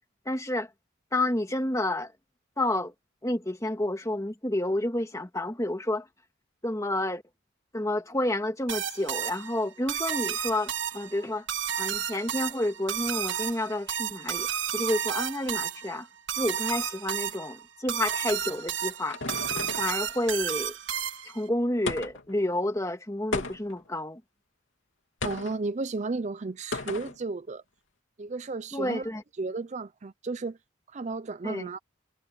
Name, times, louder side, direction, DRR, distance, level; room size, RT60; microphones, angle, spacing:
voice 1, 0.3-0.7 1.1-2.1 2.6-2.9 3.2-6.1 6.6-7.2 7.7-11.5 11.8-16.1 16.4-19.2 19.8-20.7 21.2-24.2 28.7-29.2 31.4-31.7, left 1 dB, 15° left, 1.8 m, -30 dB
sound 1, 8.7-21.4, right 9 dB, 60° right, 1.7 m, -32 dB
sound 2, 18.4-20.0 21.9-22.3 23.3-23.9 25.2-25.6 26.7-27.2, left 3 dB, 65° left, 3.3 m, -34 dB
voice 2, 25.2-27.6 28.2-29.1 29.4-30.6 30.9-31.8, right 3 dB, 35° right, 0.5 m, -33 dB
head